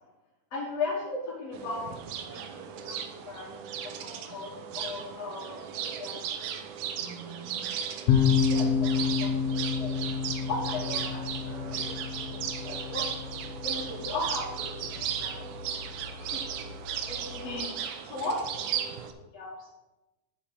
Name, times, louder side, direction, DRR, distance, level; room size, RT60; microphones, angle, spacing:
voice 1, 0.5-3.5 4.0-6.6 7.1-7.6 8.5-10.0 10.5-13.1 13.6-15.6 16.2-16.4 17.1-18.4 18.7-19.7, left 2 dB, 55° left, -7 dB, 2.3 m, -38 dB
sound 1, 1.5-19.1, right 8 dB, 85° right, 2.3 m, -36 dB
sound 2, 8.1-17.5, left 6 dB, 80° left, 1.4 m, -30 dB
9.9 x 5.9 x 4.6 m, 1.0 s
omnidirectional pair, 3.9 m